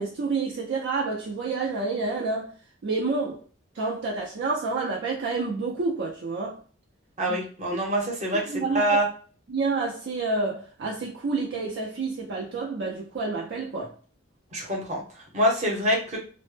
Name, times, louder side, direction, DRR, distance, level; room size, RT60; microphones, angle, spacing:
voice 1, 0.0-2.5 2.8-3.4 3.8-6.6 7.3-7.4 7.7-7.8 8.5-8.8 9.5-13.9, right 3 dB, 60° right, 0.4 m, -29 dB
voice 2, 7.2-9.0 14.5-16.2, equal, 35° right, 0.8 m, -25 dB
2.1 x 2.0 x 3.1 m
head